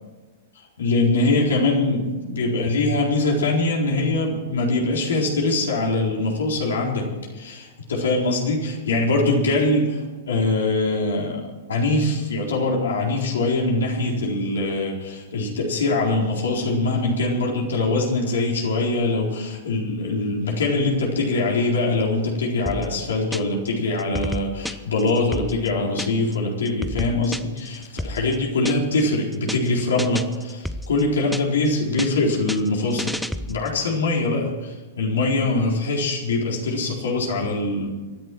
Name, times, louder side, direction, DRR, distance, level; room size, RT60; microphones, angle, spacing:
voice 1, 0.8-37.9, left 2 dB, 75° left, -1 dB, 4.1 m, -23 dB
sound 1, 22.7-23.7 24.0-26.4 26.7-29.0 29.3-29.7 30.0-31.7 32.0-33.8, equal, ahead, 0.7 m, -31 dB
25.0 x 11.0 x 4.6 m, 1.3 s
hypercardioid pair, 105°, 0 cm